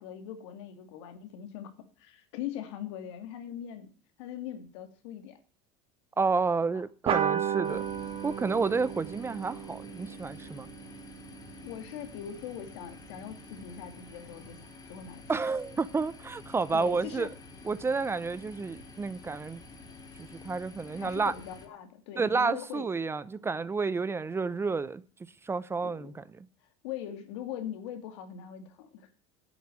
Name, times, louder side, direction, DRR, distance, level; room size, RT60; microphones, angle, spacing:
voice 1, 0.0-1.7 2.0-3.9 4.2-5.4 6.6-6.8 11.6-14.6 14.9-15.2 16.7-17.3 21.0-22.9 25.8-26.1 26.8-29.1, left 10 dB, 80° left, 2.4 m, -41 dB
voice 2, 6.2-7.8 8.2-10.7 15.3-17.3 17.6-19.6 20.2-21.3 22.2-25.0 25.4-26.5, right 4 dB, 15° right, 0.6 m, -30 dB
sound 1, 7.1-12.0, right 9 dB, 40° right, 1.7 m, -34 dB
sound 2, 7.6-21.7, left 3 dB, 25° left, 3.6 m, -49 dB
10.5 x 7.1 x 8.9 m
supercardioid pair, 115°, 15 cm